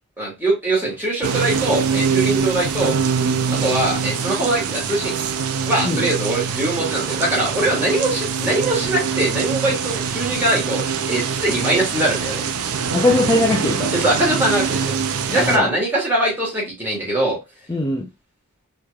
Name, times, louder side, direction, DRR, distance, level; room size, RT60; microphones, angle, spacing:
voice 1, 0.2-3.0 3.5-5.2 5.7-12.4 13.9-15.0 15.3-17.4, right 1 dB, 10° right, 2.2 m, -22 dB
sound 1, 1.2-15.6, right 6 dB, 90° right, 0.6 m, -23 dB
voice 2, 12.9-13.9 15.3-15.7 17.7-18.1, left 2 dB, 20° left, 0.6 m, -20 dB
4.4 x 3.2 x 2.4 m
head